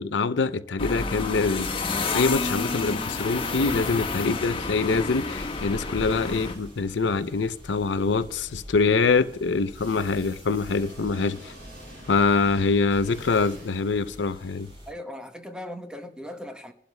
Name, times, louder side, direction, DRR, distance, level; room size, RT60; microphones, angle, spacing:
voice 1, 0.0-1.7 2.1-11.5 12.1-14.7, left 4 dB, 80° left, 0.6 m, -24 dB
sound 1, 0.8-6.5, left 3 dB, 30° left, 1.4 m, -29 dB
sound 2, 1.3-2.5 2.9-6.9 9.7-13.9, right 1 dB, 65° right, 5.0 m, -48 dB
sound 3, 2.8-14.9, equal, 30° right, 3.8 m, -48 dB
voice 2, 14.9-16.7, left 1 dB, 5° right, 0.9 m, -38 dB
26.0 x 12.0 x 2.2 m
head